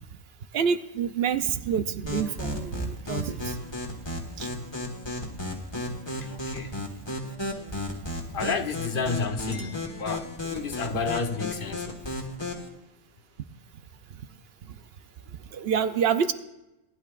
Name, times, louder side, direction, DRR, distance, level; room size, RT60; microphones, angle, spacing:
voice 1, 0.5-3.6 4.4-4.5 15.5-16.3, right 7 dB, 70° right, 0.9 m, -27 dB
sound 1, 2.1-12.7, left 1 dB, 25° left, 1.6 m, -34 dB
voice 2, 6.2-6.7 8.3-12.0, left 5 dB, 60° left, 1.0 m, -31 dB
Chink clink, 9.4-10.8, left 2 dB, 30° right, 1.1 m, -50 dB
18.5 x 10.5 x 2.5 m
omnidirectional pair, 1.1 m